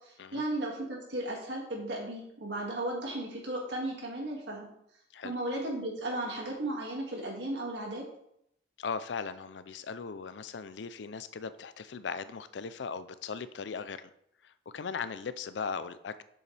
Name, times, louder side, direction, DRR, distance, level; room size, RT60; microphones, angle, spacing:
voice 1, 0.3-4.7 5.2-8.1, right 1 dB, 85° right, -1 dB, 2.2 m, -35 dB
voice 2, 8.8-14.1 14.4-16.2, left 5 dB, 85° left, 14 dB, 0.5 m, -38 dB
7.9 x 7.0 x 3.4 m, 0.76 s
head